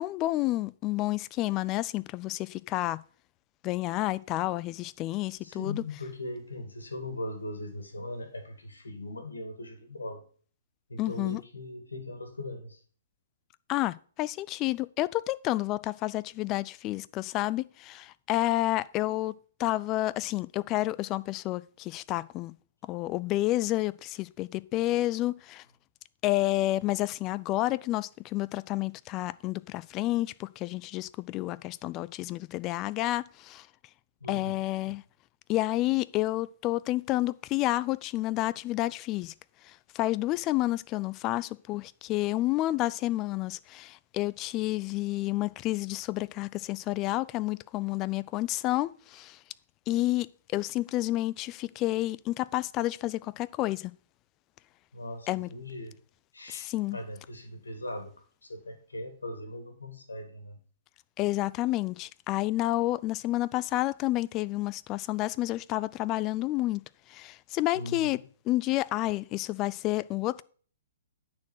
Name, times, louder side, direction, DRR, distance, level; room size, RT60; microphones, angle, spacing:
voice 1, 0.0-3.0 3.6-5.8 11.0-11.4 13.7-19.3 19.6-22.5 22.9-25.6 26.2-33.7 34.3-35.0 35.5-39.3 39.7-49.4 49.9-53.9 55.3-55.5 56.5-57.0 61.2-66.8 67.1-68.2 68.5-70.4, left 17 dB, 30° left, 0.4 m, -30 dB
voice 2, 5.4-10.2 10.9-12.8 34.2-34.6 54.9-56.0 56.3-58.1 58.4-60.6 67.7-68.1, left 1 dB, 85° left, 2.3 m, -39 dB
9.4 x 4.5 x 6.2 m
figure-of-eight pair, 125°, 0 cm